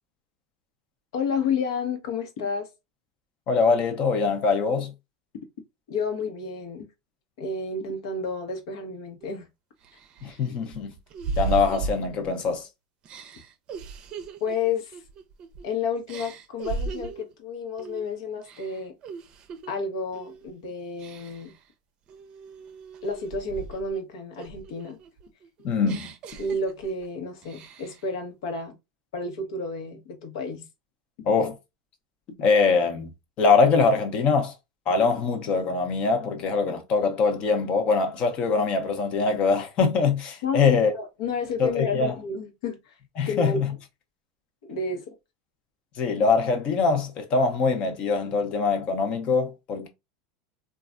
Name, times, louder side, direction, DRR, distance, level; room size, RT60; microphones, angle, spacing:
voice 1, 1.1-2.7 5.9-6.9 7.4-9.5 14.4-15.0 15.6-19.0 19.7-21.5 23.0-25.0 26.4-28.7 29.1-30.7 40.4-42.9 43.2-43.6 44.6-45.1, left 4 dB, 75° left, 1.0 m, -31 dB
voice 2, 3.5-4.9 10.2-10.9 11.4-12.7 25.6-26.1 31.3-31.6 32.4-33.1 33.4-34.5 34.9-40.9 41.6-42.1 43.2-43.7 46.0-49.9, left 4 dB, 45° left, 0.8 m, -23 dB
sound 1, 9.2-9.3 9.8-12.6 13.0-15.7 16.1-17.3 17.8-18.1 18.4-19.7 20.1-20.5 21.0-21.6 22.1-24.0 24.4-27.1 27.4-28.1, right 4 dB, 40° right, 0.6 m, -37 dB
3.1 x 2.4 x 2.4 m
supercardioid pair, 125°, 3 cm